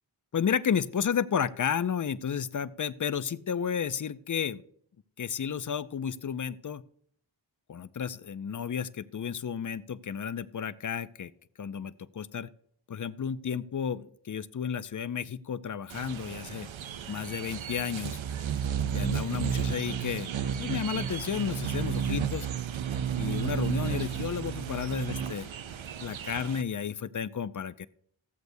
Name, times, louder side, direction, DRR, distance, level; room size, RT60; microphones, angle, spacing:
voice 1, 0.3-4.6 5.2-6.8 7.7-11.3 11.6-12.5 12.9-16.7 17.1-18.2 18.9-20.3 20.6-22.5 23.2-25.5 26.0-27.9, left 7 dB, 45° left, 15 dB, 0.5 m, -32 dB
sound 1, 15.9-26.6, right 8 dB, 85° right, 0.6 m, -33 dB
15.0 x 8.0 x 2.7 m, 0.63 s
wide cardioid pair, 65°, 45 cm